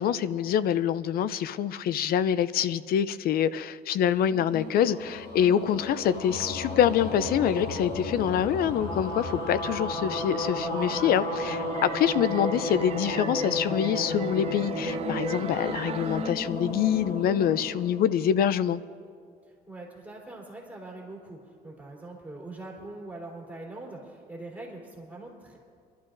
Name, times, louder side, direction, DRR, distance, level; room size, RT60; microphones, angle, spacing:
voice 1, 0.0-18.8, left 9 dB, 65° left, 17 dB, 0.5 m, -25 dB
sound 1, 4.2-18.7, left 2 dB, 80° left, 2.2 m, -33 dB
sound 2, 10.6-16.3, right 9 dB, 35° right, 0.4 m, -38 dB
voice 2, 19.7-25.6, right 2 dB, 10° right, -4 dB, 3.4 m, -42 dB
27.0 x 12.0 x 2.6 m, 2.2 s
cardioid pair, 110°, 17 cm